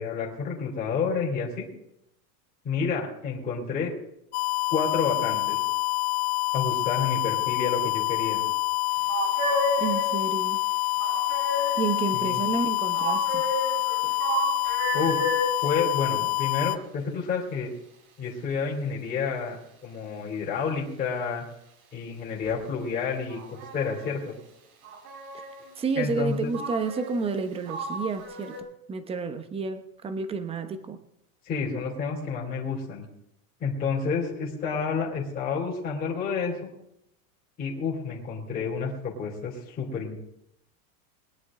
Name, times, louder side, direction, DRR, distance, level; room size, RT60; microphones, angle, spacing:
voice 1, 0.0-1.7 2.6-3.9 4.7-5.6 6.5-8.4 12.1-12.4 14.9-15.2 15.6-17.7 18.2-21.4 21.9-24.3 25.9-26.5 31.4-33.0 33.6-36.7 37.6-40.2, left 5 dB, 20° left, -4 dB, 3.2 m, -29 dB
sound 1, 4.3-16.8, left 22 dB, 50° left, 0.7 m, -27 dB
sound 2, 9.1-10.2 11.0-12.0 12.9-15.6 22.4-22.5 23.3-24.2 24.8-25.7 26.5-27.4 27.7-28.6, equal, 75° right, 5.1 m, -31 dB
voice 2, 9.8-10.6 11.8-13.4 14.0-14.1 25.3-25.4 25.8-28.6 28.9-31.0, right 4 dB, 15° right, 9 dB, 0.9 m, -30 dB
21.5 x 10.5 x 3.8 m, 0.81 s
supercardioid pair, 165°, 43 cm